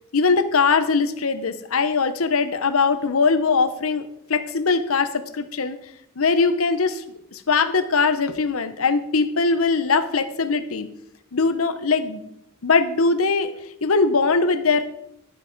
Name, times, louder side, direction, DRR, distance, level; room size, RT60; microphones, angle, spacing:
voice 1, 0.1-5.8 6.2-7.0 7.3-10.9 11.3-12.2 12.6-13.5 13.8-14.8, left 4 dB, 90° left, 12 dB, 0.9 m, -21 dB
11.5 x 7.5 x 4.6 m, 0.77 s
head